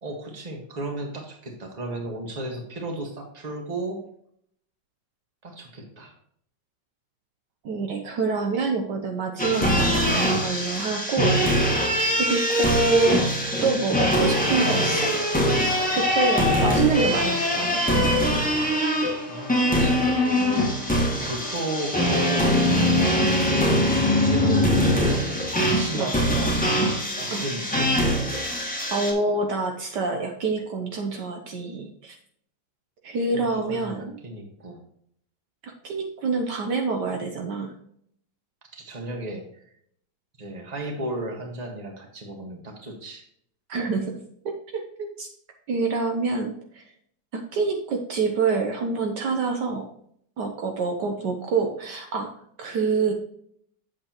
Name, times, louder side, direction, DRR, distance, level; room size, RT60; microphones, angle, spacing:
voice 1, 0.0-4.0 5.4-6.1 17.1-17.3 19.3-20.8 21.2-23.8 24.1-26.6 27.2-27.9 33.3-34.8 38.7-39.6 40.4-43.3, right 1 dB, 25° right, 2 dB, 1.5 m, -34 dB
voice 2, 7.6-11.7 12.2-13.3 13.6-15.1 15.9-18.1 23.1-23.3 24.4-24.6 25.9-26.1 27.3-27.4 28.9-32.2 33.0-34.2 35.6-37.7 43.7-44.2 44.4-45.3 45.7-46.8 47.3-49.9 50.4-52.3 52.6-53.1, right 4 dB, 65° right, 3 dB, 1.4 m, -27 dB
sound 1, 9.4-29.1, equal, 5° left, 1.4 m, -22 dB
sound 2, 14.2-22.8, left 3 dB, 45° left, 1.0 m, -40 dB
8.0 x 7.8 x 3.0 m, 0.67 s
omnidirectional pair, 2.1 m